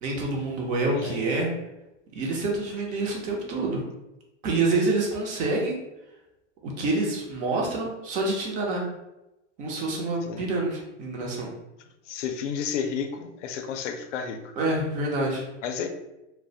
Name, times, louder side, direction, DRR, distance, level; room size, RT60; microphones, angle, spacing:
voice 1, 0.0-1.5 2.1-3.8 4.4-5.8 6.6-8.9 9.6-11.5 14.6-15.5, right 2 dB, 25° right, -1 dB, 0.4 m, -27 dB
voice 2, 12.1-14.4 15.6-15.9, left 7 dB, 80° left, 6 dB, 0.5 m, -31 dB
2.3 x 2.1 x 2.6 m, 0.95 s
supercardioid pair, 135°, 36 cm